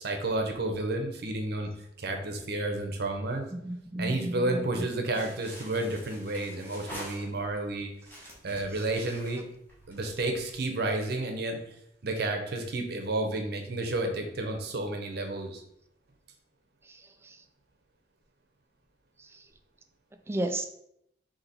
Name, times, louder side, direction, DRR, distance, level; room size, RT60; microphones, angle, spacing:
voice 1, 0.0-1.7 2.0-3.5 4.0-7.9 8.4-9.4 9.9-11.6 12.0-15.6, right 2 dB, 55° right, 4 dB, 0.7 m, -31 dB
voice 2, 3.5-4.8 16.9-17.4 19.2-19.4 20.3-20.6, right 1 dB, 15° right, 6 dB, 0.3 m, -34 dB
sound 1, 5.1-7.6 8.0-10.3, equal, 10° left, 1.3 m, -46 dB
4.2 x 2.9 x 4.0 m, 0.76 s
head